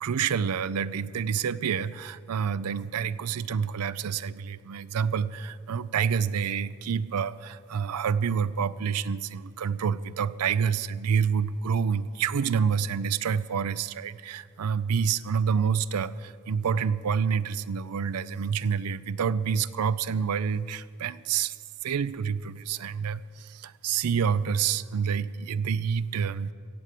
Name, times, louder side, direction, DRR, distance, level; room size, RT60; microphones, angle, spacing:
voice 1, 0.0-21.6 21.8-26.5, right 6 dB, 90° right, 17 dB, 0.5 m, -28 dB
16.0 x 8.4 x 7.5 m, 2.1 s
head